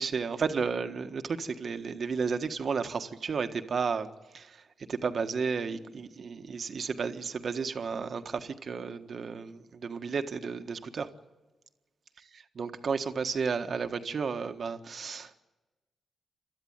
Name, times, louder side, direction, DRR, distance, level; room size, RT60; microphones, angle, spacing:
voice 1, 0.0-4.1 4.3-11.1 12.6-15.4, right 5 dB, 60° right, 1.5 m, -33 dB
28.5 x 13.0 x 9.5 m
supercardioid pair, 45°, 0 cm